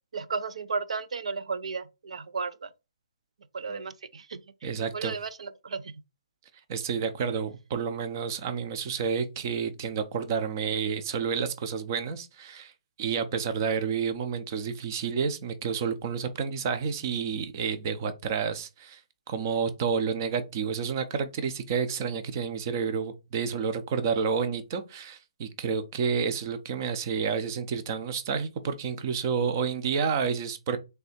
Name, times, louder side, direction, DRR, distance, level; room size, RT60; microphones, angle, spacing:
voice 1, 0.1-2.7 3.5-4.4 4.9-5.9, right 5 dB, 80° right, 0.5 m, -34 dB
voice 2, 4.6-5.2 6.7-12.7 13.0-19.0 19.3-30.8, right 6 dB, 30° right, 0.5 m, -30 dB
3.3 x 2.7 x 4.1 m
hypercardioid pair, 165°, 3 cm